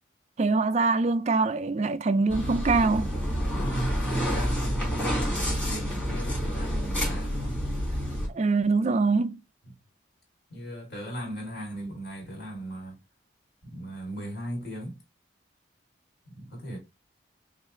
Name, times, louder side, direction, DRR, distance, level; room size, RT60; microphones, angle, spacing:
voice 1, 0.4-3.1 8.3-9.4, right 3 dB, 35° right, 0.3 m, -24 dB
sound 1, 2.3-8.3, equal, 5° left, 1.8 m, -29 dB
voice 2, 3.5-7.6 9.6-9.7 10.5-13.0 13.6-15.0 16.3-16.8, right 1 dB, 55° left, 2.5 m, -36 dB
5.5 x 2.5 x 3.0 m
head